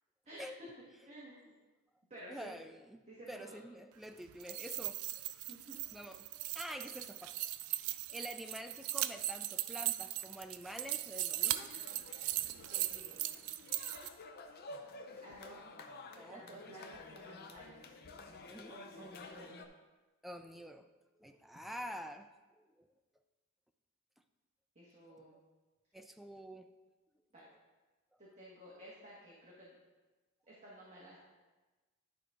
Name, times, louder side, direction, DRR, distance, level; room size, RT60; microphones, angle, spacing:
voice 1, 1.0-1.6 2.1-2.5 3.1-3.6 5.5-5.7 12.7-13.2 15.2-15.6 16.3-18.0 18.7-19.7 24.7-25.3 27.3-27.5 28.2-29.8 30.5-31.2, right 1 dB, 30° right, -7 dB, 1.6 m, -53 dB
voice 2, 2.3-5.2 5.9-7.4 7.7-11.7 16.2-16.5 18.5-18.7 20.2-20.9 21.2-22.3 22.6-22.9 25.1-25.2 25.9-26.7, equal, ahead, 6 dB, 0.4 m, -48 dB
sound 1, 4.3-14.1, right 14 dB, 70° right, 0.4 m, -38 dB
sound 2, 11.4-19.7, left 3 dB, 45° left, 0.6 m, -52 dB
11.0 x 4.0 x 4.9 m, 1.2 s
head